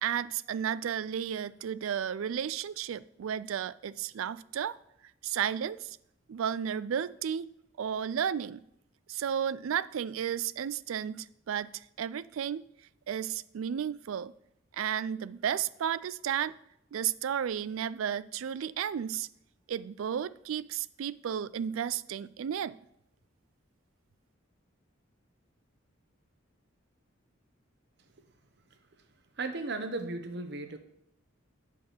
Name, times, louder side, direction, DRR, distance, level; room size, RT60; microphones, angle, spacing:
voice 1, 0.0-4.8 5.2-6.0 6.3-7.5 7.8-8.6 9.1-12.6 13.1-14.3 14.7-16.5 16.9-19.3 19.7-22.8, right 8 dB, 80° right, 0.4 m, -33 dB
voice 2, 29.4-30.8, right 3 dB, 55° right, 0.9 m, -35 dB
7.3 x 6.0 x 6.8 m
head